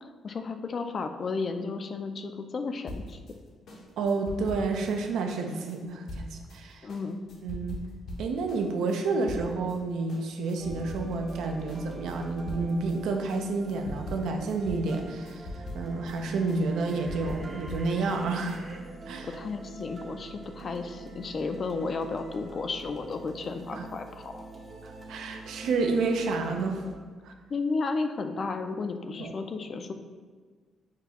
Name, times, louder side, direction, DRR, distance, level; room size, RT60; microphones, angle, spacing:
voice 1, 0.0-3.2 6.8-7.2 19.3-24.5 27.5-29.9, left 4 dB, 45° left, 7 dB, 0.3 m, -33 dB
sound 1, 2.9-9.8 10.1-11.4 11.7-18.6, left 1 dB, 70° left, 0.8 m, -42 dB
voice 2, 4.0-6.9 7.4-7.8 8.2-18.6 19.1-19.3 23.7-23.8 24.8-26.9 27.2-27.3 29.2-29.3, right 3 dB, 80° right, 3 dB, 0.4 m, -30 dB
sound 2, 10.6-26.9, right 2 dB, 35° right, 0.6 m, -45 dB
sound 3, 16.7-18.8, right 2 dB, 60° right, 1.1 m, -48 dB
5.8 x 2.3 x 2.9 m, 1.5 s
cardioid pair, 90°, 0 cm